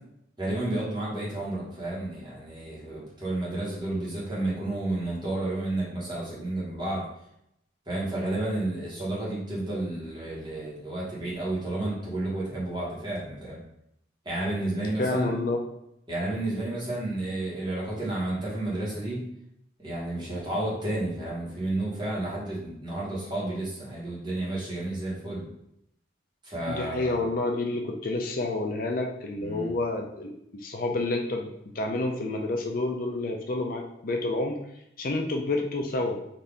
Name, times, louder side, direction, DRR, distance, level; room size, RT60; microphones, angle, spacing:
voice 1, 0.4-7.1 7.9-13.6 14.2-15.3 16.1-19.2 19.8-25.4 26.4-27.2 29.4-29.7, right 1 dB, 25° right, -6 dB, 1.3 m, -31 dB
voice 2, 15.0-15.6 26.7-30.3 30.6-31.5 31.7-34.6 35.0-36.2, left 2 dB, 50° left, 2 dB, 0.4 m, -29 dB
4.0 x 2.6 x 3.4 m, 0.77 s
head